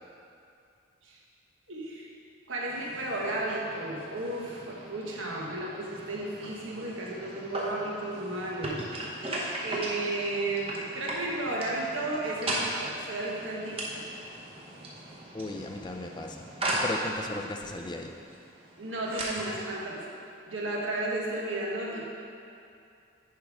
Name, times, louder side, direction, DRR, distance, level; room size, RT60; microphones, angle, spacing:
voice 1, 1.7-2.1 2.5-8.8 9.6-14.0 18.8-20.0 20.4-22.1, right 2 dB, 75° right, -3 dB, 1.3 m, -33 dB
sound 1, 2.7-19.8, right 1 dB, 30° right, 0.9 m, -38 dB
voice 2, 15.3-18.1, left 2 dB, 20° left, 3 dB, 0.4 m, -37 dB
10.5 x 3.6 x 4.8 m, 2.5 s
head